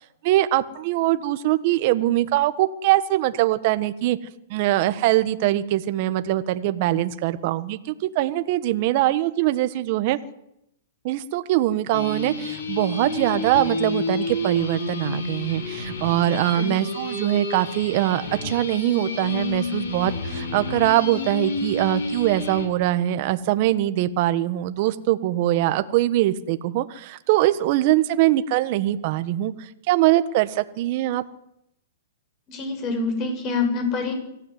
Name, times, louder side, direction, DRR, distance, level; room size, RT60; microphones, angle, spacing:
voice 1, 0.2-4.2 4.5-10.2 11.0-31.2, right 14 dB, 45° right, 11 dB, 1.4 m, -22 dB
sound 1, 11.9-22.7, left 2 dB, 80° left, 6.1 m, -30 dB
voice 2, 32.5-34.1, left 4 dB, 30° left, 6 dB, 7.6 m, -26 dB
24.5 x 16.0 x 9.5 m, 0.81 s
hypercardioid pair, 150°, 0 cm